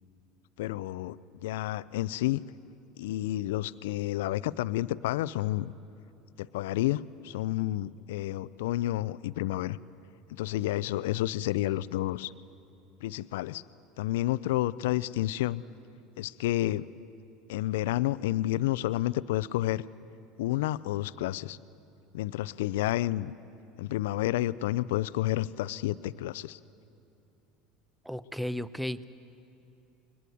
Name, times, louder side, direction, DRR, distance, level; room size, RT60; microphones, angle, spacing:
voice 1, 0.6-2.4 3.0-5.7 6.4-9.8 10.3-12.3 13.0-13.6 14.0-15.6 16.2-16.9 17.5-19.8 20.4-21.6 22.1-23.3 23.8-26.6, left 15 dB, 75° left, 18 dB, 0.5 m, -30 dB
voice 2, 28.0-29.1, equal, 5° right, 15 dB, 0.8 m, -34 dB
22.5 x 19.5 x 9.4 m, 2.9 s
hypercardioid pair, 85°, 0 cm